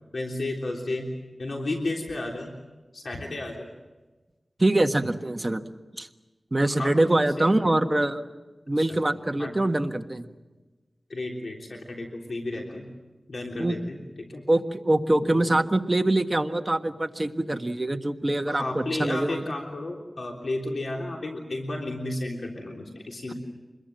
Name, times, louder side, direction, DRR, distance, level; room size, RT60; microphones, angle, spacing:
voice 1, 0.1-1.1 1.4-2.5 2.9-3.7 6.8-7.7 8.8-9.0 9.4-9.5 11.1-12.8 13.3-14.4 15.2-15.5 18.5-23.3, left 2 dB, 70° left, 0 dB, 3.4 m, -33 dB
voice 2, 4.6-5.6 6.0-6.1 6.5-8.2 8.7-10.3 13.6-13.8 14.5-19.5, right 1 dB, 25° right, 6 dB, 1.5 m, -24 dB
26.0 x 21.5 x 7.8 m, 1.2 s
wide cardioid pair, 75°, 0 cm